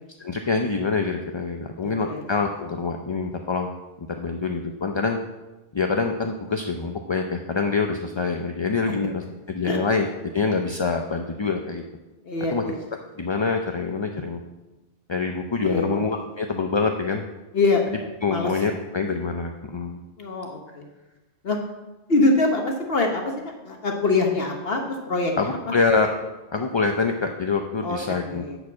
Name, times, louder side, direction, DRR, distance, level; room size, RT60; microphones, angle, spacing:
voice 1, 0.2-3.7 4.2-5.2 5.7-10.1 10.3-11.8 12.5-12.6 13.2-14.4 15.1-17.2 18.2-20.0 25.4-26.1 26.5-28.4, left 4 dB, 35° left, 4 dB, 0.5 m, -25 dB
voice 2, 1.8-2.2 9.7-9.8 12.2-12.8 15.6-16.0 17.5-17.8 18.3-18.5 20.2-20.9 21.4-21.6 22.1-23.3 23.6-25.3 27.8-28.6, left 3 dB, 65° left, 2 dB, 1.3 m, -24 dB
10.5 x 5.0 x 7.2 m, 1.1 s
omnidirectional pair, 1.1 m